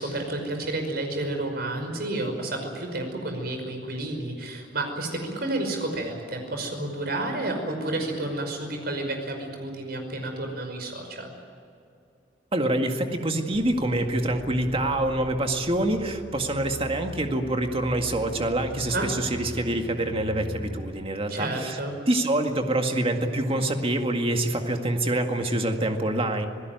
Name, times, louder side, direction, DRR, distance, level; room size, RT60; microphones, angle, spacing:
voice 1, 0.0-11.3 18.9-19.1 21.3-21.9, right 2 dB, 60° right, 4 dB, 5.5 m, -31 dB
voice 2, 12.5-21.8 22.1-26.5, right 1 dB, 30° right, 4 dB, 2.0 m, -26 dB
sound 1, 13.5-20.9, equal, 75° left, 5.0 m, -40 dB
27.0 x 17.5 x 9.4 m, 2.6 s
head